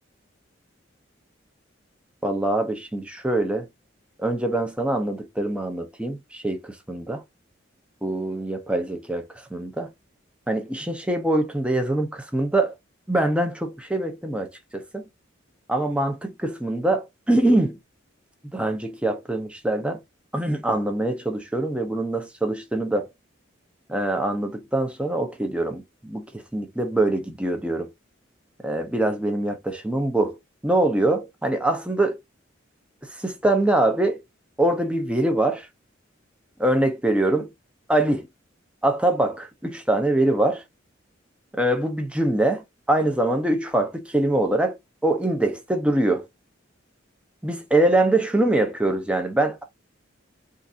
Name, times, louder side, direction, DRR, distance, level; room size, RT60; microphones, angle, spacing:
voice 1, 2.2-3.7 4.2-7.2 8.0-9.2 9.5-9.9 10.5-12.7 13.1-15.0 15.7-17.8 18.5-20.0 20.3-23.1 23.9-27.9 28.6-30.4 30.6-32.2 33.2-34.2 34.6-35.7 36.6-37.5 37.9-38.3 38.8-40.6 41.5-44.8 45.0-46.3 47.4-49.6, right 1 dB, 5° right, 0.7 m, -23 dB
3.7 x 2.6 x 2.6 m
head